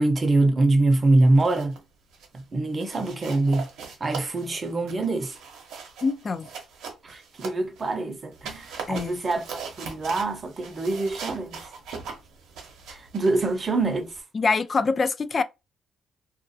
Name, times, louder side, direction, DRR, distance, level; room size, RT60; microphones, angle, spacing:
voice 1, 0.0-1.8 2.3-3.7 4.0-5.4 7.0-11.6 12.9-14.2, right 2 dB, 35° right, 0.6 m, -24 dB
sound 1, 1.2-1.8 2.1-2.4 2.8-7.9 8.3-14.2, right 6 dB, 85° right, 0.7 m, -40 dB
voice 2, 6.0-6.5 8.9-9.2 14.3-15.4, left 4 dB, 40° left, 0.3 m, -24 dB
2.4 x 2.2 x 2.6 m
cardioid pair, 90°, 0 cm